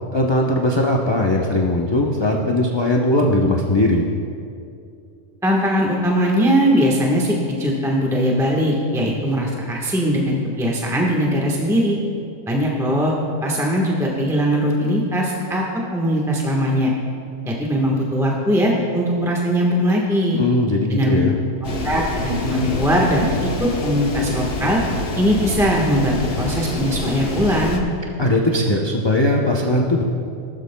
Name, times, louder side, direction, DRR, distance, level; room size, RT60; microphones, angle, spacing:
voice 1, 0.1-4.1 20.4-21.3 28.2-30.0, left 1 dB, 25° left, -1 dB, 0.6 m, -19 dB
voice 2, 5.4-12.0 12.5-13.1 13.4-15.6 15.9-16.9 17.5-20.4 20.9-21.2 21.6-24.8 25.2-27.8, equal, ahead, -2 dB, 1.1 m, -20 dB
sound 1, 21.6-27.8, left 2 dB, 50° left, 1.2 m, -26 dB
19.0 x 12.5 x 2.2 m, 2.5 s
omnidirectional pair, 1.4 m